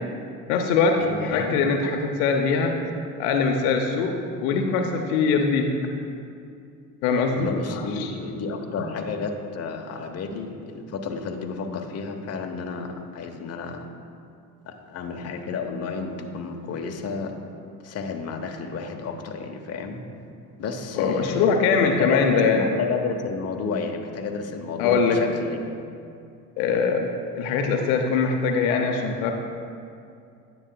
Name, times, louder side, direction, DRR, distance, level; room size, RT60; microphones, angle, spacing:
voice 1, 0.5-2.8 3.2-5.7 7.0-8.1 8.8-8.9 20.9-22.7 24.8-25.2 26.6-27.1 27.3-29.3, left 5 dB, 75° left, 3 dB, 0.8 m, -22 dB
voice 2, 7.4-13.8 14.6-17.3 17.8-20.0 20.6-21.5 21.8-25.8 26.7-26.8, left 4 dB, 35° left, 4 dB, 0.8 m, -31 dB
9.8 x 7.9 x 2.2 m, 2.5 s
hypercardioid pair, 65°, 44 cm